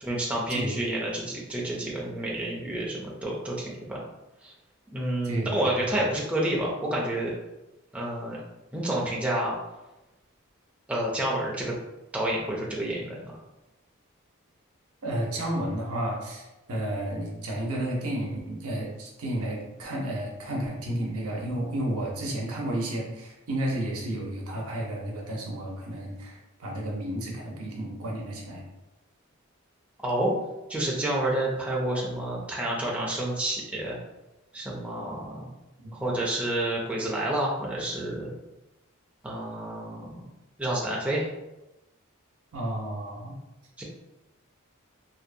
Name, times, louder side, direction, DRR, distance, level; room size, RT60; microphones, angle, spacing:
voice 1, 0.0-4.0 4.4-4.5 4.9-7.3 7.9-8.4 8.7-9.5 10.9-11.8 12.1-13.3 30.0-30.3 30.7-34.0 34.5-35.5 35.9-38.3 39.2-40.2 40.6-41.3 43.8-43.9, right 1 dB, 5° right, -4 dB, 0.3 m, -29 dB
voice 2, 5.2-5.6 15.0-28.6 35.8-36.0 42.5-43.4, right 1 dB, 90° right, -1 dB, 0.7 m, -32 dB
2.6 x 2.0 x 2.5 m, 0.98 s
head